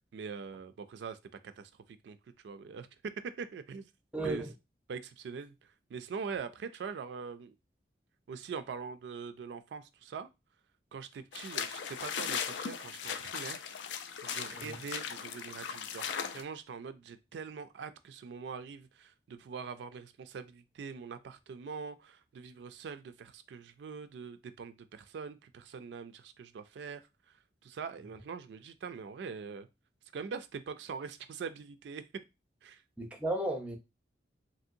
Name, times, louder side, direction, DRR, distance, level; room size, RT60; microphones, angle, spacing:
voice 1, 0.1-1.2 1.4-2.2 2.4-2.9 3.2-3.9 4.2-4.5 4.9-7.5 8.3-10.3 10.9-13.7 14.2-27.0 27.3-27.4 27.6-29.7 30.1-32.0 32.6-32.8, right 5 dB, 80° right, 0.3 m, -43 dB
voice 2, 4.1-4.5 14.5-14.8 33.0-33.8, right 1 dB, 5° right, 0.5 m, -34 dB
sound 1, 11.3-16.4, left 7 dB, 85° left, 0.4 m, -38 dB
3.0 x 2.7 x 2.5 m
head